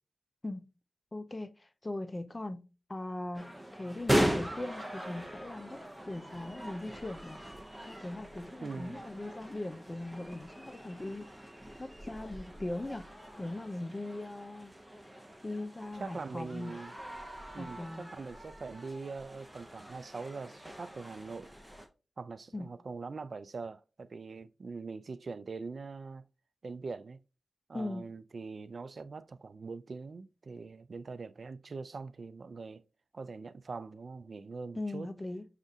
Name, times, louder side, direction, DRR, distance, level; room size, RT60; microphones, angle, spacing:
voice 1, 1.1-7.4 7.9-11.5 11.8-13.1 13.4-14.7 15.4-16.8 17.6-18.1 22.5-22.7 27.7-28.1 34.8-35.5, left 2 dB, 30° left, 0.4 m, -40 dB
sound 1, 3.3-21.9, equal, 5° right, 0.8 m, -39 dB
voice 2, 8.6-9.0 16.0-16.9 17.5-21.5 22.2-26.2 26.6-27.2 27.7-32.8 33.1-35.1, right 4 dB, 65° right, 0.3 m, -42 dB
6.4 x 2.4 x 2.6 m
cardioid pair, 50°, 0 cm